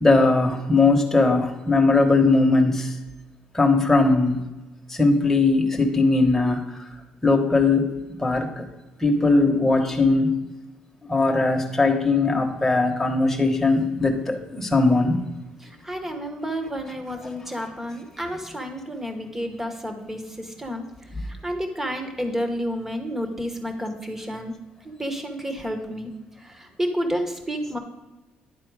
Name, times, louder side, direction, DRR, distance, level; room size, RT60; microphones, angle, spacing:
voice 1, 0.0-2.9 3.5-4.4 4.9-6.8 7.2-7.9 8.2-8.7 9.0-10.4 11.1-15.2 17.2-17.3, left 3 dB, 10° left, 2 dB, 1.1 m, -19 dB
voice 2, 15.6-20.9 21.2-24.5 24.8-26.1 26.4-27.8, equal, 10° right, 5 dB, 1.0 m, -30 dB
10.5 x 4.4 x 4.7 m, 1.1 s
cardioid pair, 135°, 3 cm